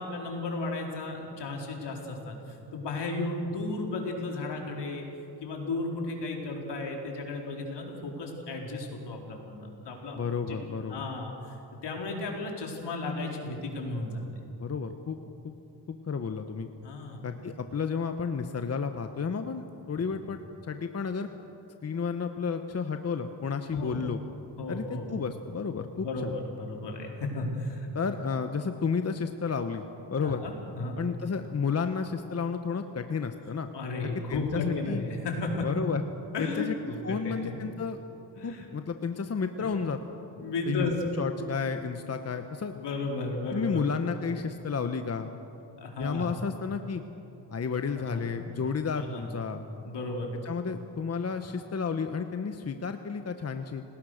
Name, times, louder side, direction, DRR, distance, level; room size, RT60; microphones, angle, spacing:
voice 1, 0.0-5.0 5.4-10.2 10.5-10.6 10.9-11.6 11.8-14.2 16.8-17.2 20.1-20.2 23.7-24.0 24.6-25.1 26.0-27.9 30.2-31.0 33.7-35.7 36.3-37.6 38.4-38.7 39.6-39.7 40.3-41.1 42.7-43.8 45.8-46.3 47.9-48.3 48.9-49.2 49.8-50.3, left 2 dB, 70° left, 0 dB, 4.4 m, -34 dB
voice 2, 10.1-11.1 14.6-15.2 15.4-15.5 15.9-16.7 17.2-21.3 21.8-24.2 24.7-26.3 27.9-30.4 31.0-33.7 34.3-35.0 35.6-36.0 36.4-36.8 37.0-38.0 38.4-40.0 40.7-40.9 41.2-42.7 43.5-45.3 46.0-47.0 47.5-49.6 50.4-53.8, left 5 dB, 35° left, 7 dB, 1.1 m, -32 dB
29.0 x 19.0 x 6.6 m, 2.9 s
cardioid pair, 95°, 42 cm